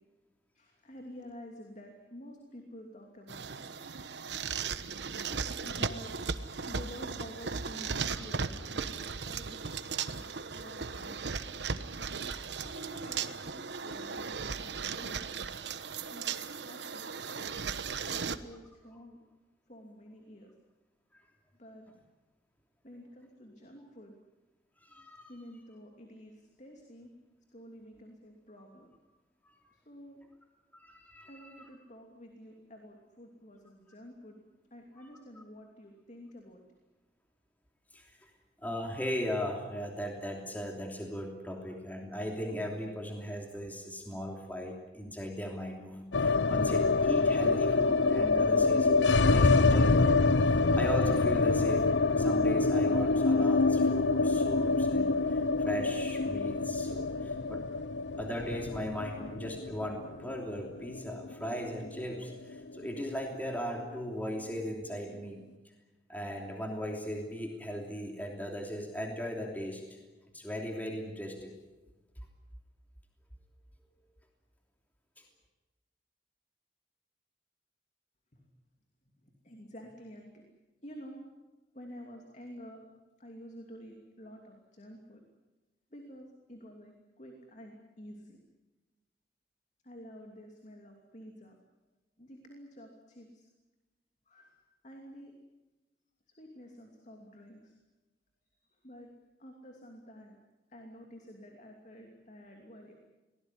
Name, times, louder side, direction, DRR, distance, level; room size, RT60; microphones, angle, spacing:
voice 1, 0.5-3.7 4.9-6.1 6.6-9.7 10.0-10.2 10.5-11.2 12.6-15.3 16.1-17.4 17.8-19.2 19.7-20.5 21.6-21.9 22.8-24.1 25.3-27.1 27.5-28.9 29.7-30.2 31.3-34.4 34.7-36.6 78.3-78.4 79.2-80.4 80.8-81.2 81.7-82.8 83.2-85.2 85.9-88.4 89.8-91.6 92.2-93.5 94.3-94.6 94.8-95.3 96.4-97.8 98.5-99.1 99.4-100.4 100.7-103.0, equal, 40° left, 2 dB, 2.8 m, -50 dB
sound 1, 3.3-18.4, right 5 dB, 75° right, 1.1 m, -37 dB
voice 2, 24.8-25.3 29.4-29.5 30.7-31.7 35.0-35.1 37.9-38.3 38.6-50.2 50.5-57.6 58.2-65.4 66.1-70.0 70.3-71.5, equal, 10° left, 1 dB, 3.0 m, -38 dB
sound 2, 46.1-62.2 62.5-62.6 62.9-63.6, left 3 dB, 85° left, 0.7 m, -26 dB
23.5 x 18.5 x 10.0 m, 1.1 s
head